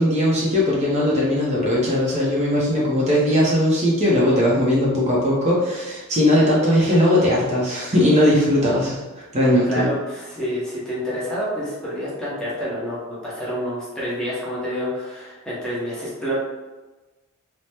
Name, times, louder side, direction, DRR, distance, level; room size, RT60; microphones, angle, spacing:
voice 1, 0.0-9.0 9.3-9.9, left 1 dB, 30° right, -5 dB, 0.6 m, -19 dB
voice 2, 9.7-16.4, equal, 5° left, -8 dB, 0.7 m, -28 dB
3.3 x 2.0 x 2.8 m, 1.2 s
head